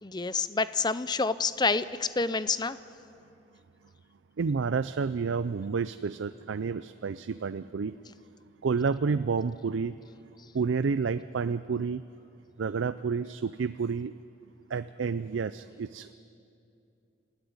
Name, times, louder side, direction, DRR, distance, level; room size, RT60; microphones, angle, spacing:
voice 1, 0.0-2.8, left 4 dB, 20° left, 15 dB, 0.5 m, -28 dB
voice 2, 4.4-8.0 8.6-9.9 10.5-12.0 12.6-14.1 14.7-16.1, right 5 dB, 75° right, 13 dB, 0.4 m, -30 dB
28.5 x 14.0 x 9.5 m, 2.7 s
head